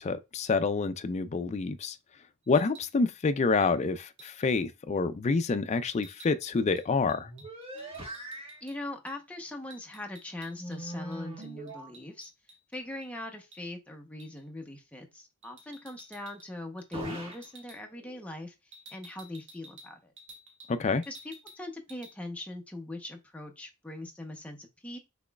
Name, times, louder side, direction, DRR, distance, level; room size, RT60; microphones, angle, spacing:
voice 1, 0.0-2.0 2.5-7.3 20.7-21.0, left 4 dB, 30° left, 0.4 m, -27 dB
sound 1, 2.4-2.9 3.6-3.8 4.2-4.5 5.9-8.8 9.1-9.2 9.5-10.8 11.1-13.1 13.5-13.7 14.2-14.4 15.4-16.5 16.8-17.0 17.3-17.8 18.7-20.8 21.0-21.6 21.9-22.1, right 1 dB, 55° right, 1.1 m, -53 dB
sound 2, 6.6-6.8 7.1-8.7 10.5-11.9 16.9-17.5 17.9-18.3, right 1 dB, 25° right, 1.4 m, -41 dB
voice 2, 8.6-12.3 12.7-20.1 21.1-25.0, left 2 dB, 5° left, 0.8 m, -41 dB
6.1 x 3.0 x 2.3 m
head